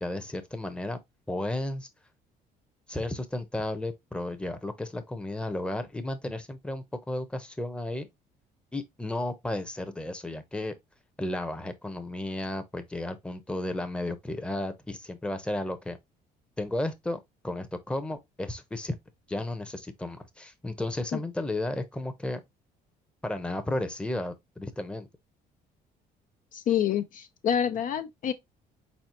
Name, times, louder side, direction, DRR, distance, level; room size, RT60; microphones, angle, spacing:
voice 1, 0.0-1.0 1.3-1.9 2.9-8.1 8.7-10.7 11.2-16.0 16.6-19.0 19.3-22.4 23.2-25.1, left 1 dB, 5° left, 0.8 m, -33 dB
voice 2, 26.5-28.3, left 9 dB, 50° left, 0.5 m, -27 dB
4.2 x 4.2 x 2.9 m
cardioid pair, 110°, 17 cm